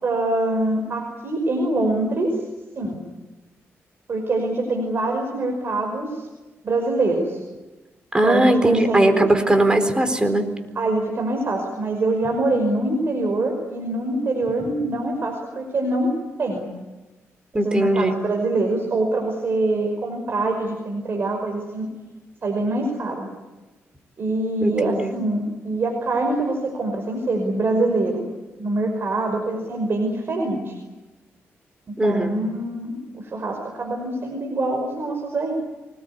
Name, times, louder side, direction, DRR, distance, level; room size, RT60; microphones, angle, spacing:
voice 1, 0.0-2.4 2.8-3.0 4.1-6.3 6.6-7.4 8.2-9.2 10.8-16.1 16.4-16.7 17.5-21.9 22.4-23.3 24.2-28.3 28.6-30.7 31.9-35.5, right 2 dB, 50° right, 2 dB, 5.6 m, -24 dB
voice 2, 8.1-10.4 17.5-18.1 24.6-25.1 32.0-32.4, right 1 dB, 15° right, 8 dB, 4.1 m, -19 dB
25.0 x 20.5 x 9.7 m, 1.1 s
cardioid pair, 90°, 5 cm